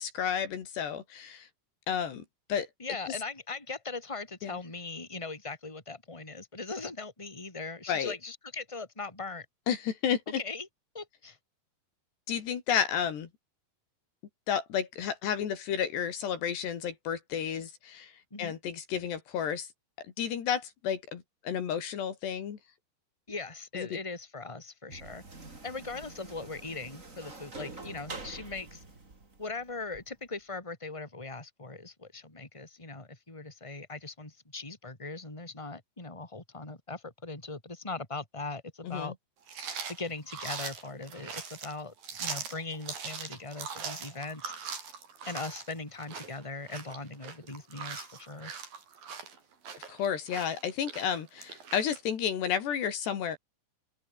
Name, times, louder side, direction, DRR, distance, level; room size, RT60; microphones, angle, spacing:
voice 1, 0.0-1.5 1.9-2.2 2.5-2.7 4.4-4.6 7.9-8.2 9.7-10.4 12.3-13.3 14.5-18.1 18.4-19.7 20.2-22.6 23.7-24.0 38.8-39.1 49.9-53.4, left 8 dB, 70° left, 4.7 m, -31 dB
voice 2, 2.8-9.5 10.3-10.7 10.9-11.4 18.3-18.5 23.3-25.2 25.6-28.8 29.4-39.1 39.9-44.5 45.2-48.5, left 3 dB, 5° left, 4.3 m, -40 dB
sound 1, 24.9-30.0, right 3 dB, 20° right, 3.6 m, -46 dB
sound 2, 39.5-52.0, right 6 dB, 55° right, 5.9 m, -41 dB
open air
omnidirectional pair, 5.1 m